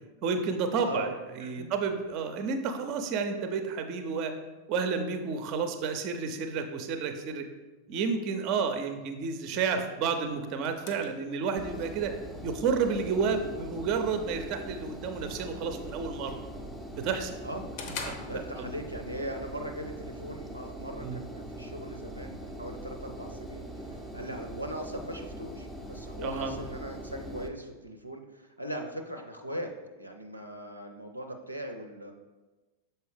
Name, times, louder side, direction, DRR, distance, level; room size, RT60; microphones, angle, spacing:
voice 1, 0.2-4.3 4.7-7.4 7.9-12.1 12.4-16.4 17.0-17.3 18.0-18.4 21.0-21.2 24.3-24.4 26.2-26.5, right 5 dB, 40° right, 7 dB, 0.6 m, -31 dB
voice 2, 0.8-1.7 9.5-9.8 17.4-17.7 18.2-32.1, right 1 dB, 90° right, 4 dB, 0.5 m, -40 dB
sound 1, 10.0-19.0, left 4 dB, 45° left, 0.8 m, -48 dB
Engine, 11.6-27.5, right 1 dB, 5° left, 0.6 m, -42 dB
6.8 x 4.3 x 3.4 m, 1.2 s
figure-of-eight pair, 90°, 0 cm